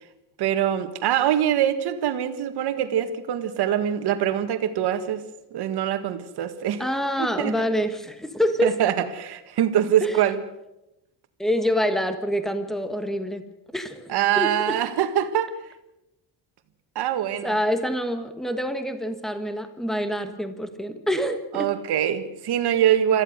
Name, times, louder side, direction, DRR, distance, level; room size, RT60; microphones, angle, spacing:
voice 1, 0.4-5.2 5.5-6.8 7.2-7.5 8.6-10.4 14.1-15.5 17.0-17.6 21.5-23.2, right 10 dB, 60° right, 1.9 m, -24 dB
voice 2, 6.8-8.7 10.0-10.1 11.4-13.4 13.7-14.7 17.4-21.7, equal, ahead, 1.5 m, -26 dB
27.0 x 14.5 x 6.6 m
cardioid pair, 165°, 43 cm